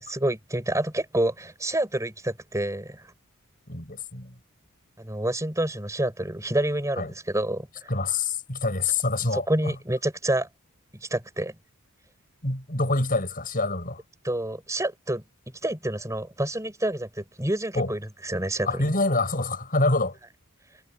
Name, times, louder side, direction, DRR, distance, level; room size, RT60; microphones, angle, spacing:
voice 1, 0.0-3.1 5.0-7.9 9.3-10.5 11.0-11.5 14.2-15.2 15.6-18.9, right 1 dB, 15° right, 4.8 m, -28 dB
voice 2, 3.7-4.3 7.0-7.1 7.9-9.7 12.4-14.0 17.8-17.9 18.6-20.2, left 3 dB, 40° left, 7.1 m, -26 dB
head